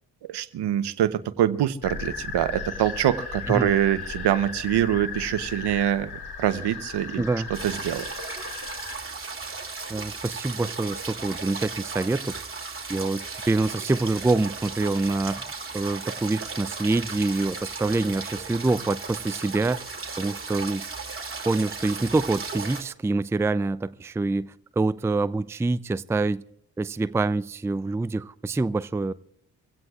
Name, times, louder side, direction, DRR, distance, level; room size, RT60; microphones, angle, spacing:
voice 1, 0.3-6.1 6.4-7.2 7.6-8.1, right 11 dB, 70° right, 0.9 m, -24 dB
sound 1, 1.8-9.0, left 5 dB, 60° left, 3.4 m, -36 dB
voice 2, 7.2-7.5 9.9-12.4 12.9-19.9 20.2-20.9 21.4-26.4 26.8-29.1, right 3 dB, 5° right, 0.4 m, -26 dB
sound 2, 7.5-22.8, right 4 dB, 30° right, 2.7 m, -36 dB
24.5 x 16.5 x 2.4 m
hypercardioid pair, 45°, 42 cm